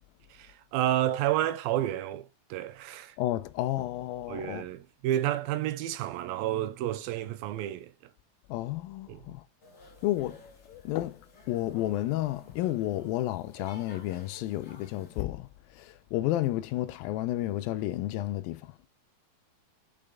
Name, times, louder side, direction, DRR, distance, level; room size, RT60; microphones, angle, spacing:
voice 1, 0.3-3.2 4.3-7.9 9.1-9.2, right 13 dB, 85° right, 2.5 m, -30 dB
voice 2, 3.2-4.7 8.5-9.4 10.0-18.8, left 15 dB, 80° left, 2.2 m, -32 dB
sound 1, 9.6-15.2, equal, 30° left, 1.8 m, -52 dB
6.7 x 5.2 x 3.5 m
omnidirectional pair, 4.3 m